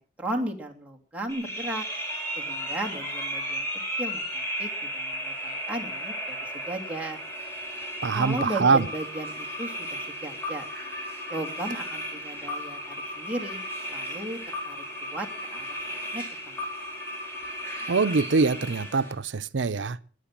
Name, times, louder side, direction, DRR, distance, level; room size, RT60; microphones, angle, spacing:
voice 1, 0.0-1.8 2.4-3.7 4.0-6.4 6.7-7.2 8.1-10.6 11.3-13.6 13.9-14.4 14.7-16.5, right 1 dB, 10° right, 2.9 m, -35 dB
sound 1, 1.3-19.1, equal, 15° left, 4.9 m, -35 dB
voice 2, 8.0-8.9 17.9-20.0, right 4 dB, 90° right, 0.6 m, -23 dB
20.0 x 8.0 x 7.4 m
head